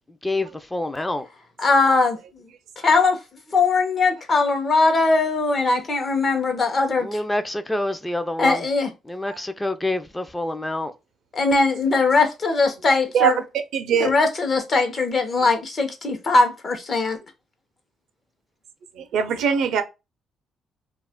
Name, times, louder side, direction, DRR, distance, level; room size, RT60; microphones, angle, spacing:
voice 1, 0.2-1.3 7.0-8.6 9.1-10.9, left 1 dB, 15° left, 0.4 m, -27 dB
voice 2, 1.6-2.5 2.8-3.2 3.5-7.2 8.4-8.9 11.3-13.4 14.0-17.2, left 3 dB, 45° left, 0.8 m, -20 dB
voice 3, 13.7-14.1 19.0-19.8, right 7 dB, 80° right, 0.5 m, -21 dB
2.4 x 2.1 x 3.5 m
cardioid pair, 90°, 0 cm